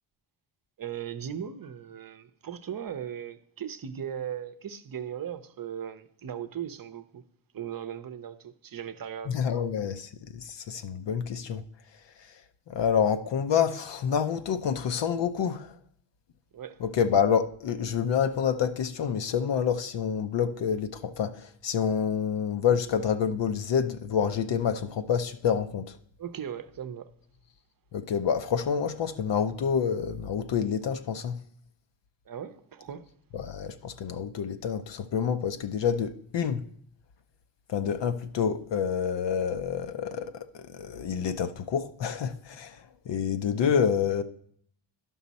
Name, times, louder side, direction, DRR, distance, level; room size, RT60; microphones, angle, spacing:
voice 1, 0.8-7.2 7.5-9.4 16.5-16.8 26.2-27.1 32.3-33.1, right 9 dB, 45° right, 0.8 m, -38 dB
voice 2, 9.3-11.6 12.7-15.7 16.8-26.0 27.9-31.4 33.3-36.6 37.7-44.2, left 7 dB, 60° left, 0.6 m, -28 dB
11.0 x 5.5 x 4.1 m
cardioid pair, 65°, 50 cm